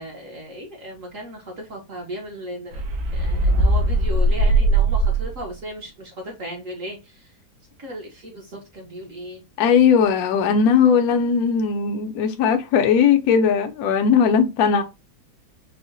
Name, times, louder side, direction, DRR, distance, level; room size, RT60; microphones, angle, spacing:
voice 1, 0.0-2.8 3.1-7.3 7.8-9.4, right 1 dB, 55° right, 0.9 m, -36 dB
sound 1, 2.7-5.5, right 2 dB, 80° right, 1.5 m, -19 dB
voice 2, 9.6-14.8, left 6 dB, 70° left, 0.9 m, -18 dB
4.7 x 2.1 x 2.5 m
omnidirectional pair, 2.2 m